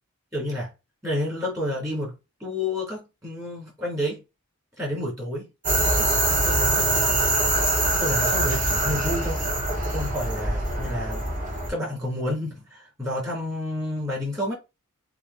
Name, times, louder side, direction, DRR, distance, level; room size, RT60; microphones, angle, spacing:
voice 1, 0.3-0.7 1.0-2.1 2.4-4.2 4.8-5.5 6.3-7.3 8.0-9.4 9.8-11.2 11.7-14.5, left 1 dB, 15° right, 3.0 m, -30 dB
sound 1, 5.6-11.7, right 2 dB, 35° right, 1.6 m, -23 dB
7.2 x 2.6 x 2.7 m
head